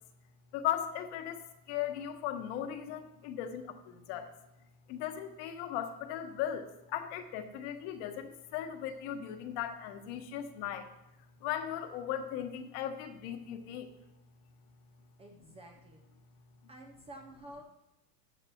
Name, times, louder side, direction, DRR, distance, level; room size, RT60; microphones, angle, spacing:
voice 1, 0.5-1.4 1.7-4.3 4.9-10.9 11.4-13.9, left 10 dB, 50° left, 7 dB, 1.2 m, -37 dB
voice 2, 15.2-16.0 16.7-17.6, right 1 dB, 15° right, 2 dB, 0.5 m, -50 dB
13.5 x 8.5 x 2.9 m, 0.94 s
supercardioid pair, 140°, 48 cm